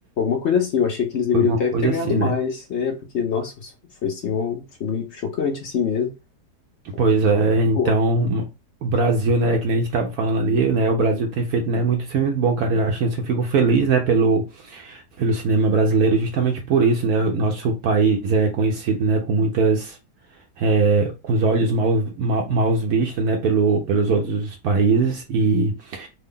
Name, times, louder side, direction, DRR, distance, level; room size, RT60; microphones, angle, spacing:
voice 1, 0.2-3.7 4.0-6.1 7.7-7.9, left 7 dB, 65° left, 0.7 m, -24 dB
voice 2, 1.3-2.3 7.0-8.5 8.8-20.0 20.6-26.1, right 3 dB, 70° right, 1.0 m, -20 dB
3.3 x 2.1 x 3.6 m
omnidirectional pair, 1.8 m